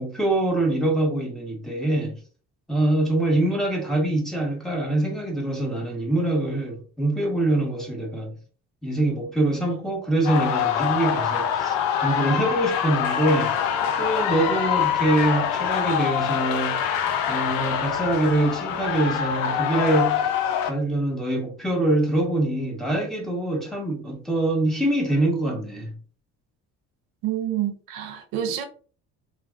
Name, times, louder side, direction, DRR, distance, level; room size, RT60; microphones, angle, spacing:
voice 1, 0.0-2.2 2.7-8.4 8.8-11.8 12.0-13.6 14.0-16.8 17.3-20.2 20.6-25.9, right 1 dB, ahead, 1.1 m, -24 dB
sound 1, 10.2-20.7, left 8 dB, 85° left, 0.6 m, -25 dB
voice 2, 27.2-28.6, right 10 dB, 90° right, 0.6 m, -28 dB
3.3 x 2.3 x 2.4 m
cardioid pair, 100°, 33 cm